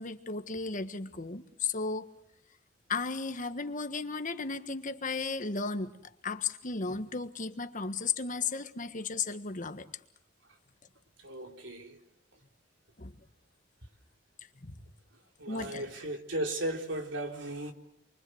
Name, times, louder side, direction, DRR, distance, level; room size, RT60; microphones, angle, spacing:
voice 1, 0.0-2.1 2.9-5.9 6.2-9.9 13.0-13.1 14.6-14.8 15.5-15.8, left 4 dB, 45° left, 1.6 m, -34 dB
voice 2, 11.2-12.0 15.4-17.7, right 1 dB, 75° right, 3.7 m, -36 dB
28.5 x 23.5 x 7.9 m
head